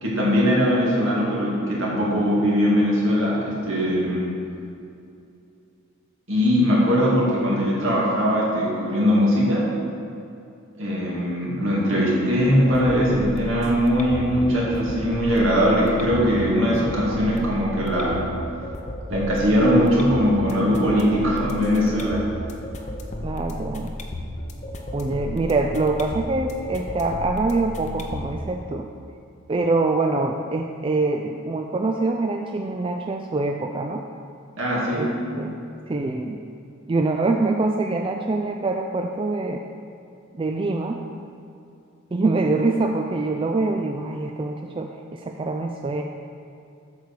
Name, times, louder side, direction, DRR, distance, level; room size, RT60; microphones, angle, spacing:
voice 1, 0.0-4.3 6.3-9.7 10.8-18.3 19.1-22.2 34.6-35.1, equal, 65° right, -5 dB, 2.2 m, -20 dB
sound 1, 12.4-28.4, left 1 dB, 35° left, 0.7 m, -34 dB
voice 2, 23.2-23.9 24.9-28.9 29.5-34.0 34.9-35.6 35.9-36.4 36.9-39.6 40.4-41.0 42.1-46.0, right 3 dB, 25° right, 3 dB, 0.3 m, -24 dB
8.3 x 4.7 x 6.7 m, 2.6 s
head